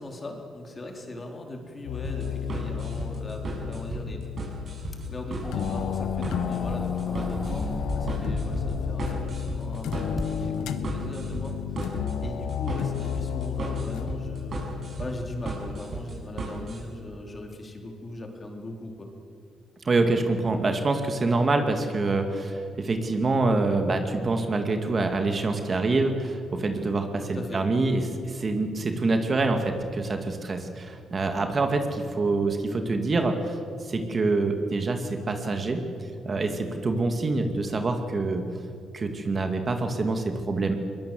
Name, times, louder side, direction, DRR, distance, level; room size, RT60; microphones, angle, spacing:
voice 1, 0.0-4.2 5.1-14.6 15.0-19.1 27.3-27.6, left 2 dB, 30° left, 2 dB, 4.0 m, -39 dB
sound 1, 1.9-15.8, left 9 dB, 85° left, 1.1 m, -32 dB
sound 2, 2.0-16.8, right 3 dB, 50° right, 7.7 m, -36 dB
sound 3, 5.4-9.6 10.2-10.3, equal, 5° left, 1.4 m, -34 dB
voice 2, 19.8-33.6 33.8-35.8 36.3-38.4 38.9-40.8, right 3 dB, 35° right, 5 dB, 2.3 m, -26 dB
22.0 x 20.5 x 7.8 m, 2.3 s
cardioid pair, 90°, 0 cm